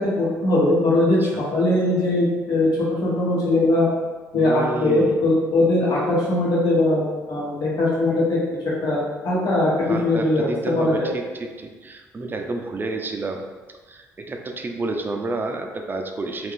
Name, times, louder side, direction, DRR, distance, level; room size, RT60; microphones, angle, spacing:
voice 1, 0.0-3.9 4.3-8.4 8.8-9.7 10.0-10.5 10.8-11.1, left 2 dB, 65° left, -7 dB, 1.2 m, -20 dB
voice 2, 1.2-1.5 4.3-5.3 9.9-13.4 13.9-16.5, right 2 dB, 30° right, 4 dB, 0.4 m, -30 dB
2.5 x 2.4 x 3.6 m, 1.3 s
supercardioid pair, 65°, 7 cm